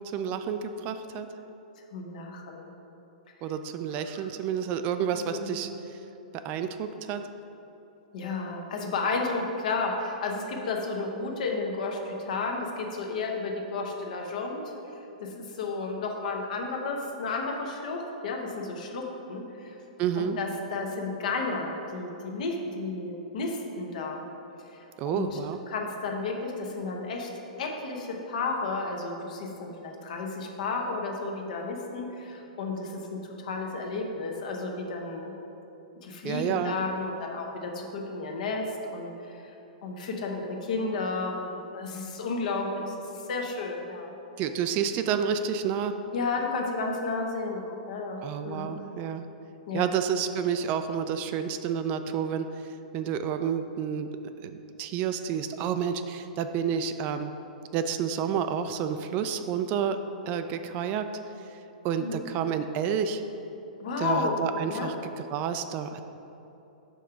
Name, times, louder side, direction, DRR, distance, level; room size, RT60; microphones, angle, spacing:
voice 1, 0.1-1.3 3.4-5.7 6.4-7.2 20.0-20.4 25.0-25.6 36.2-36.7 44.4-45.9 48.2-49.2 49.7-52.5 52.9-54.1 54.4-57.3 57.7-60.0 60.3-61.1 61.8-63.2 64.0-66.0, right 8 dB, 35° right, 9 dB, 0.3 m, -29 dB
voice 2, 1.9-2.7 3.9-4.3 5.1-5.5 8.1-14.6 15.2-19.8 20.2-24.2 24.7-25.4 25.7-27.3 27.6-35.3 36.0-39.5 39.8-44.1 46.1-48.7 49.7-49.9 62.0-62.2 63.8-64.4 64.7-64.9, left 3 dB, 65° left, 1 dB, 0.9 m, -32 dB
5.2 x 3.8 x 5.7 m, 2.9 s
hypercardioid pair, 130°, 4 cm